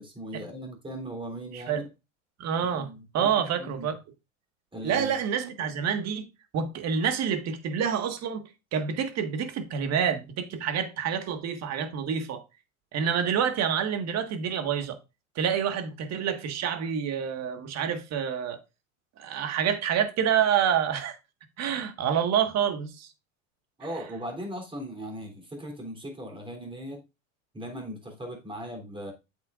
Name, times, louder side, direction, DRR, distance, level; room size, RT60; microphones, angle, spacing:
voice 1, 0.0-1.9 2.7-4.0 4.7-5.2 23.8-27.0 27.5-29.1, equal, 15° right, 3.4 m, -38 dB
voice 2, 2.4-3.9 4.8-6.2 6.5-12.4 12.9-15.0 15.3-18.6 19.2-21.2 21.6-23.1, right 8 dB, 40° right, 1.7 m, -28 dB
8.3 x 7.9 x 2.5 m
hypercardioid pair, 105°, 39 cm